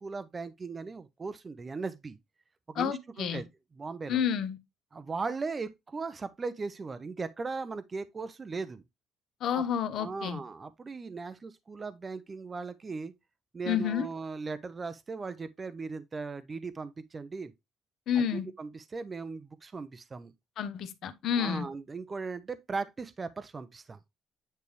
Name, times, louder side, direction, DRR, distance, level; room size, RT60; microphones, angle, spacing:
voice 1, 0.0-2.2 2.7-3.5 3.8-4.2 4.9-8.8 9.5-9.6 10.0-13.1 13.5-17.5 18.2-20.3 21.4-24.0, right 4 dB, 20° right, 0.6 m, -38 dB
voice 2, 2.7-3.4 4.1-4.6 9.4-10.4 13.6-14.1 18.1-18.5 20.6-21.7, left 8 dB, 55° left, 0.9 m, -30 dB
9.3 x 3.4 x 3.2 m
cardioid pair, 165°, 0 cm